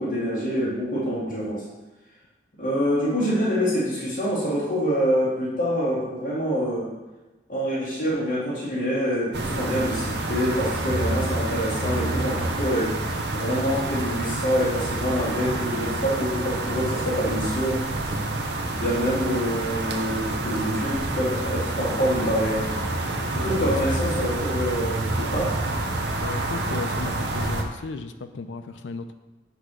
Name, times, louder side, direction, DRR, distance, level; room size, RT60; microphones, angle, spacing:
voice 1, 0.0-1.6 2.6-6.9 7.5-13.0 13.3-17.8 18.7-22.7 23.3-25.6, equal, 45° left, -9 dB, 2.2 m, -26 dB
sound 1, 9.3-27.6, right 2 dB, 60° right, 0.7 m, -28 dB
voice 2, 23.5-24.0 26.2-29.1, left 3 dB, 75° left, 9 dB, 0.5 m, -35 dB
8.1 x 3.0 x 6.2 m, 1.1 s
head